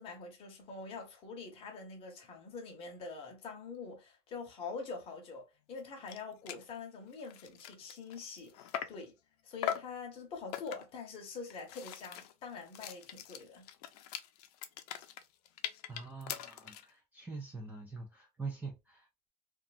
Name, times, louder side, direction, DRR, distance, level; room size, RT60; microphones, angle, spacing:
voice 1, 0.0-9.2 9.4-13.7, left 4 dB, 30° left, 0.8 m, -45 dB
sound 1, 5.8-5.9 6.1-6.2 6.5-6.7 7.1-9.1 9.6-10.0 10.5-11.0 11.5-16.9, left 10 dB, 85° left, 0.5 m, -41 dB
voice 2, 15.9-19.3, right 4 dB, 10° right, 0.3 m, -44 dB
2.6 x 2.3 x 2.4 m
cardioid pair, 165°, 19 cm